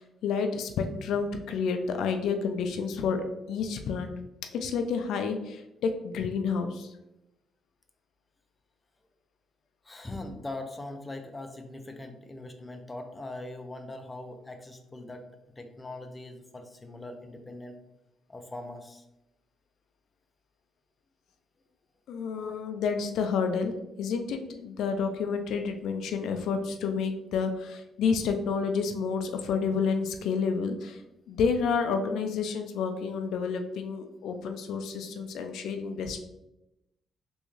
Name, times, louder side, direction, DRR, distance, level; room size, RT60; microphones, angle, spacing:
voice 1, 0.0-4.1 4.5-6.9 22.1-31.0 31.3-36.3, left 5 dB, 80° left, 6 dB, 0.4 m, -30 dB
voice 2, 9.9-15.2 15.6-17.8 18.3-19.0 22.4-22.5, left 2 dB, 20° left, 5 dB, 0.6 m, -41 dB
3.5 x 3.0 x 3.1 m, 0.89 s
cardioid pair, 90°, 0 cm